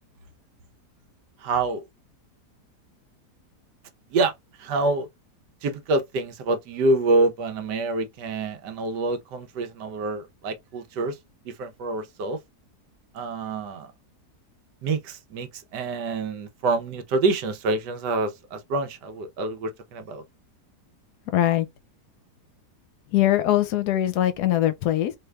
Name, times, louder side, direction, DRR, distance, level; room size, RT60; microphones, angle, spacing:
voice 1, 1.4-1.8 4.1-4.3 4.6-5.1 5.6-11.2 11.4-12.4 13.1-13.9 14.8-20.2, right 3 dB, 90° right, 1.4 m, -26 dB
voice 2, 21.3-21.7 23.1-25.1, left 13 dB, 75° left, 1.1 m, -22 dB
3.2 x 3.2 x 2.3 m
omnidirectional pair, 1.8 m